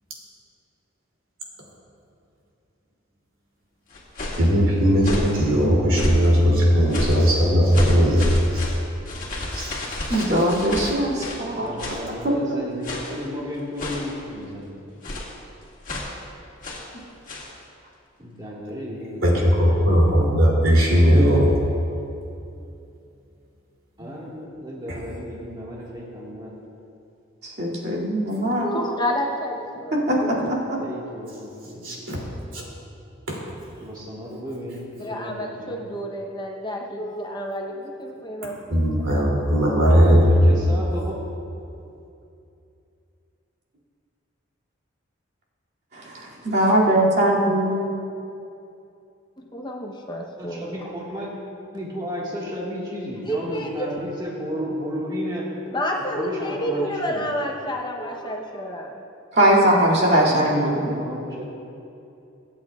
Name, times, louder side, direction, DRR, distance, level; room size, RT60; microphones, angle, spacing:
sound 1, 3.9-4.5 5.0-5.4 5.9-6.4 6.9-7.3 7.7-11.5 11.8-12.1 12.8-13.2 13.8-14.2 15.0-15.4 15.8-16.2 16.6-16.9 17.3-17.5, left 1 dB, 40° left, 2.1 m, -30 dB
voice 1, 4.4-8.3 8.5-8.6 9.5-10.3 10.8-10.9 11.9-12.0 19.2-21.6 24.9-25.0 31.8-32.2 32.5-32.6 38.7-40.7, equal, 80° right, -4 dB, 2.9 m, -18 dB
voice 2, 10.1-11.9 27.4-28.8 29.9-30.8 45.9-47.9 59.3-60.7, right 1 dB, 55° right, -6 dB, 2.5 m, -21 dB
voice 3, 11.4-14.7 18.2-19.3 24.0-26.5 30.8-31.8 33.8-35.8 39.8-41.2 50.4-51.3 51.7-55.5 56.2-57.3 60.3-61.4, equal, 20° right, -5 dB, 1.7 m, -33 dB
voice 4, 28.6-30.5 35.0-38.8 39.1-39.3 49.4-50.8 53.2-53.9 55.7-59.0, equal, 20° left, 0 dB, 0.8 m, -30 dB
24.5 x 8.7 x 2.4 m, 2.7 s
head